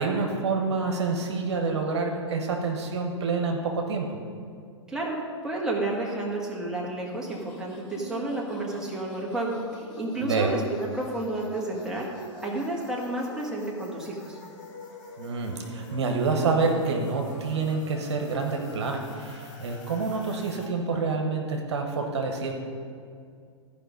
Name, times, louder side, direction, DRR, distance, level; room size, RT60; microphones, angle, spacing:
voice 1, 0.0-4.1 10.2-10.5 15.2-22.5, right 4 dB, 60° right, 2 dB, 1.2 m, -27 dB
voice 2, 4.9-10.6 10.9-12.1 12.4-14.4, right 2 dB, 5° right, -4 dB, 1.7 m, -31 dB
sound 1, 7.1-20.7, left 2 dB, 45° left, 1.9 m, -45 dB
13.5 x 5.1 x 5.2 m, 2.3 s
figure-of-eight pair, 105°, 16 cm